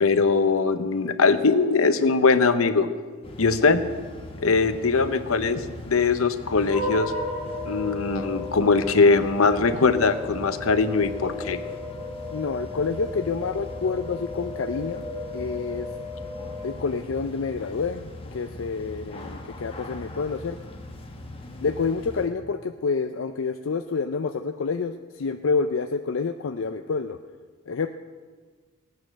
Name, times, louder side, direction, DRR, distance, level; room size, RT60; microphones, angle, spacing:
voice 1, 0.0-2.9 3.4-3.8 4.4-7.1 7.7-11.6, left 4 dB, 85° left, 10 dB, 0.8 m, -21 dB
sound 1, 3.2-22.3, left 1 dB, 25° left, 1.2 m, -41 dB
sound 2, 6.6-17.2, left 2 dB, 5° right, 5.1 m, -35 dB
voice 2, 12.3-15.1 15.3-15.9 16.6-20.6 21.6-27.2 27.7-27.9, left 4 dB, 70° left, 7 dB, 0.5 m, -28 dB
16.5 x 9.5 x 6.5 m, 1.5 s
head